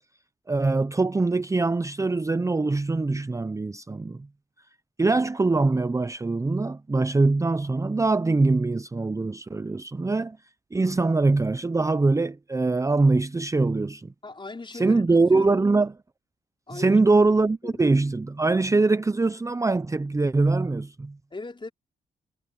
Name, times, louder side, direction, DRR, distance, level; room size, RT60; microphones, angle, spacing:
voice 1, 0.5-4.3 5.0-10.4 10.7-14.1 14.7-15.9 16.7-21.2, right 3 dB, 20° right, 0.6 m, -23 dB
voice 2, 14.2-15.1 15.3-15.6 16.7-17.0 17.6-17.8 21.3-21.7, left 3 dB, 30° left, 5.1 m, -38 dB
cardioid pair, 75°, 17 cm